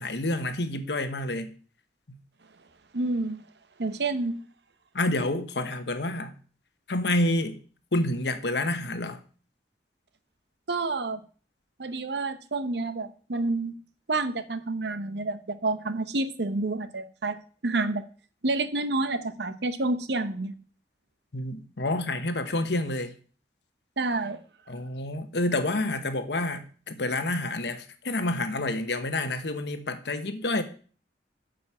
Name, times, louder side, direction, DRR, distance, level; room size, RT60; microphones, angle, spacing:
voice 1, 0.0-1.5 4.9-6.3 6.9-7.6 7.9-9.2 21.3-23.1 24.7-30.6, left 2 dB, 70° left, 1.1 m, -28 dB
voice 2, 2.9-3.4 3.8-4.3 10.7-11.2 11.8-13.7 14.1-18.0 18.4-20.5 24.0-24.4, right 2 dB, 70° right, 0.9 m, -29 dB
9.2 x 5.2 x 7.1 m
head